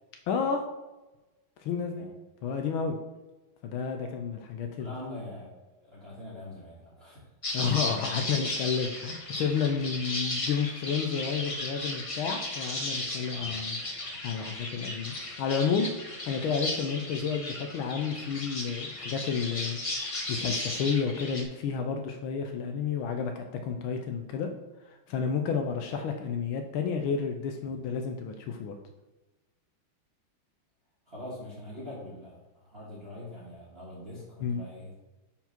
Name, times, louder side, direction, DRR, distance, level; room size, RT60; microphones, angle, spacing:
voice 1, 0.3-0.6 1.6-2.1 2.4-3.0 3.6-4.9 7.5-15.9 16.3-24.5 24.8-28.8 34.4-34.6, left 6 dB, 80° left, 4 dB, 1.5 m, -31 dB
voice 2, 4.8-7.3 13.3-13.6 27.6-27.8 31.1-34.9, left 1 dB, 30° right, -8 dB, 1.7 m, -43 dB
sound 1, 7.4-21.4, left 2 dB, 60° left, 0.3 m, -35 dB
5.5 x 4.6 x 5.8 m, 1.1 s
omnidirectional pair, 2.3 m